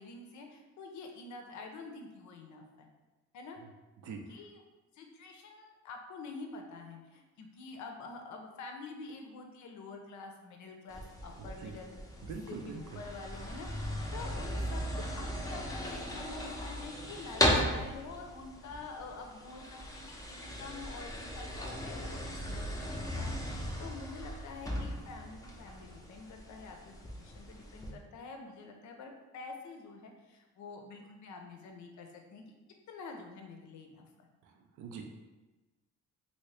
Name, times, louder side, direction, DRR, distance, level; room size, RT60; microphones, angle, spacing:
voice 1, 0.0-2.9 3.3-3.6 4.0-4.6 4.9-32.4 32.9-34.3, left 3 dB, 70° left, 3 dB, 0.6 m, -47 dB
sound 1, 10.9-27.9, equal, 10° left, 0.6 m, -37 dB
voice 2, 11.4-11.7 12.2-13.0 34.4-35.2, right 5 dB, 75° right, 3 dB, 0.6 m, -44 dB
2.9 x 2.8 x 3.2 m, 1.1 s
cardioid pair, 90°, 30 cm